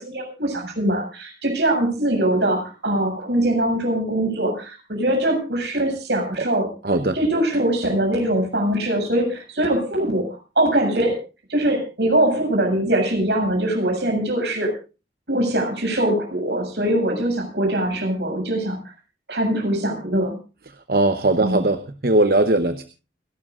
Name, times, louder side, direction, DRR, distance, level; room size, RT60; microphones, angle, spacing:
voice 1, 0.0-6.7 7.1-10.3 10.6-11.2 11.5-14.7 15.3-18.8 19.3-20.4 21.4-21.6, right 1 dB, 75° right, 2 dB, 7.4 m, -22 dB
voice 2, 6.8-7.1 20.9-22.8, right 2 dB, 55° right, 9 dB, 1.0 m, -19 dB
29.5 x 12.5 x 2.5 m, 0.32 s
head